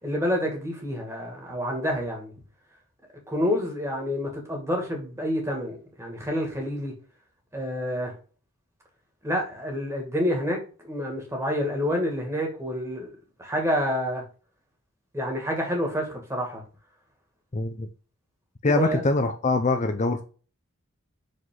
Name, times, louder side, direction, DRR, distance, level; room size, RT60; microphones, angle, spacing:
voice 1, 0.0-2.3 3.3-6.9 7.5-8.1 9.2-13.1 13.4-14.2 15.1-16.6 18.7-19.0, equal, 15° right, 2.1 m, -28 dB
voice 2, 17.5-17.9 18.6-20.2, left 2 dB, 35° left, 0.6 m, -23 dB
5.9 x 5.2 x 3.8 m
head